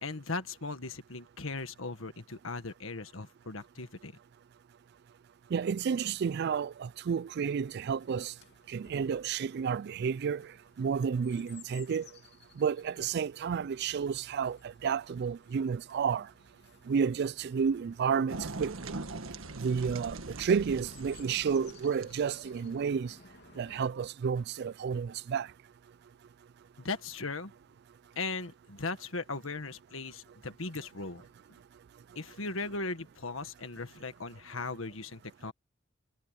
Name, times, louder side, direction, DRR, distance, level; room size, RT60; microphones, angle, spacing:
voice 1, 0.0-4.1 26.8-27.5 28.1-31.2 32.1-35.5, left 3 dB, 80° left, 1.6 m, -38 dB
voice 2, 5.5-8.3 8.7-10.4 10.8-12.1 12.6-14.6 14.8-16.2 16.9-18.9 19.6-23.1 23.6-25.5, right 6 dB, 55° right, 0.3 m, -31 dB
Chirp tweet, 7.6-23.9, left 5 dB, 55° left, 3.0 m, -59 dB
sound 1, 18.3-22.6, right 2 dB, 85° right, 1.6 m, -42 dB
head